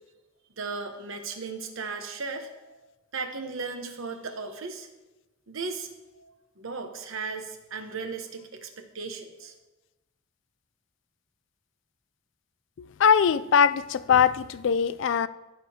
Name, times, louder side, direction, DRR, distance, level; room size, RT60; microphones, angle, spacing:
voice 1, 0.6-2.8 3.1-4.9 5.5-9.5, right 4 dB, 70° right, 1.0 m, -36 dB
voice 2, 12.8-15.3, left 7 dB, 60° left, 0.3 m, -22 dB
15.0 x 6.6 x 2.8 m
head